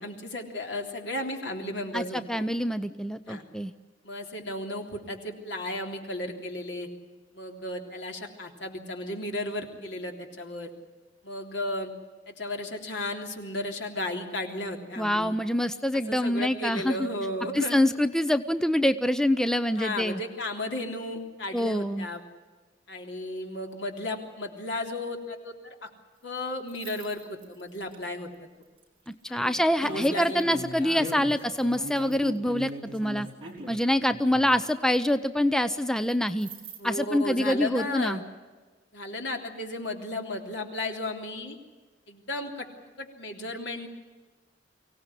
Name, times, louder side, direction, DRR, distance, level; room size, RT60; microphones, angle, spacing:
voice 1, 0.0-2.4 3.3-3.4 4.0-6.9 7.3-10.7 11.2-11.9 12.3-15.4 15.9-17.8 19.7-22.2 22.9-25.9 26.2-28.5 29.3-31.4 36.8-38.2 38.9-41.6 42.1-42.7 43.0-43.9, left 1 dB, 75° left, 3 dB, 3.4 m, -34 dB
voice 2, 1.9-3.7 15.0-17.0 17.5-20.2 21.5-22.1 29.1-33.3 33.7-36.5 36.8-38.2, left 1 dB, 5° left, 12 dB, 0.6 m, -25 dB
sound 1, 26.7-28.0 28.8-29.1 29.8-34.6 36.1-36.8, equal, 30° right, 4.1 m, -39 dB
24.5 x 17.5 x 9.9 m, 1.3 s
head